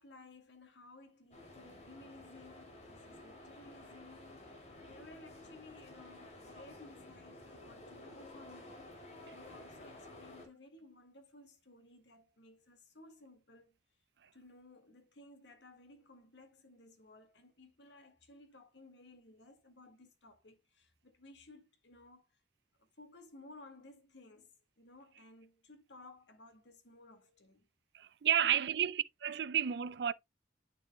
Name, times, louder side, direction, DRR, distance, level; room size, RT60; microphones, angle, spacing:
voice 1, 0.0-4.5 4.8-13.8 14.3-22.4 22.8-27.7 28.4-28.7, left 2 dB, 80° left, 2.0 m, -58 dB
sound 1, 1.3-10.5, left 1 dB, 40° left, 3.0 m, -53 dB
voice 2, 27.9-30.1, right 9 dB, 65° right, 0.4 m, -31 dB
9.4 x 6.2 x 2.2 m
head